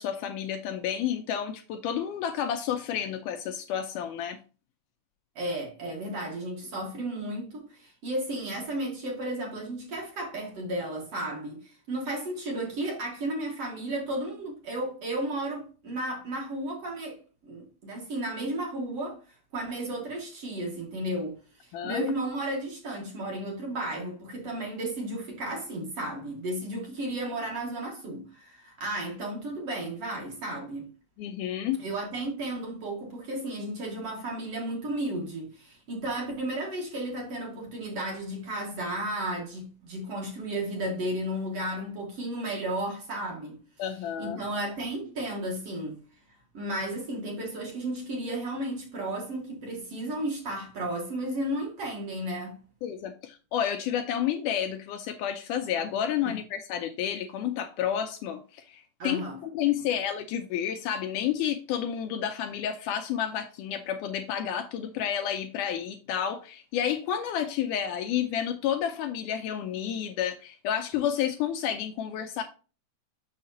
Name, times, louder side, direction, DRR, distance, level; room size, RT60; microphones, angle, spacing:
voice 1, 0.0-4.4 21.7-22.1 31.2-31.8 43.8-44.4 52.8-72.4, left 9 dB, 80° left, 1.9 m, -30 dB
voice 2, 5.4-19.2 19.5-30.9 31.8-43.6 44.2-46.0 46.5-52.6 56.2-56.4 59.0-59.4, right 1 dB, 55° right, 2.1 m, -33 dB
6.5 x 6.4 x 2.7 m
omnidirectional pair, 4.0 m